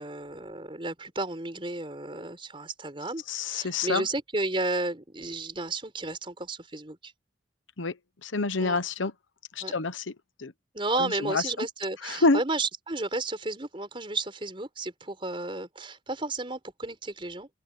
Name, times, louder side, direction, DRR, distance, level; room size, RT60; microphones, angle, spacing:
voice 1, 0.0-7.1 8.6-8.8 9.6-9.8 10.7-17.5, right 2 dB, 25° right, 4.6 m, -33 dB
voice 2, 3.3-4.1 7.8-9.1 9.5-10.1 10.4-10.5 10.9-11.7 12.0-12.4, left 3 dB, 90° left, 1.1 m, -28 dB
open air
head